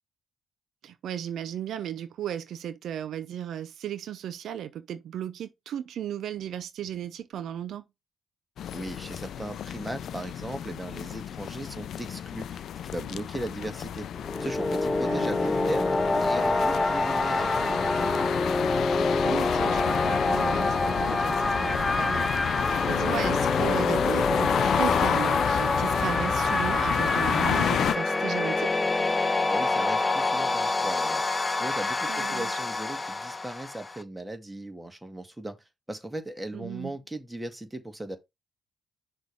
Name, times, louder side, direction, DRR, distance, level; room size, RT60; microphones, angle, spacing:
voice 1, 0.8-7.8 15.0-15.7 19.2-28.7 32.1-32.6 36.5-37.0, right 10 dB, 70° right, 0.7 m, -35 dB
sound 1, 8.6-27.9, left 9 dB, 65° left, 0.5 m, -30 dB
voice 2, 8.7-14.1 14.4-18.2 29.4-31.2 31.6-35.6 35.9-38.2, right 1 dB, 10° right, 1.9 m, -38 dB
sound 2, 14.1-34.0, left 2 dB, 20° left, 0.8 m, -26 dB
6.2 x 3.2 x 5.5 m
cardioid pair, 90°, 0 cm